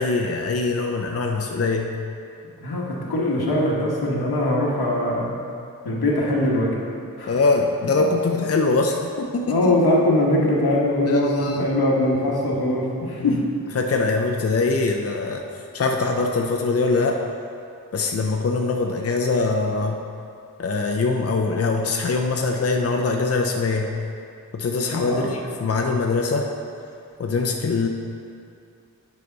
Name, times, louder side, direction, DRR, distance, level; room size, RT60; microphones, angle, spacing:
voice 1, 0.0-1.9 7.3-9.8 11.1-11.7 13.2-13.4 13.7-15.4 15.7-17.2 17.9-20.0 20.6-23.9 24.5-26.5 27.2-27.9, left 3 dB, 40° left, 2 dB, 0.6 m, -23 dB
voice 2, 2.6-5.3 5.8-6.7 7.2-7.4 9.4-13.4 24.9-25.3, left 1 dB, 80° left, -3 dB, 1.4 m, -22 dB
9.6 x 5.0 x 4.0 m, 2.4 s
wide cardioid pair, 65°, 37 cm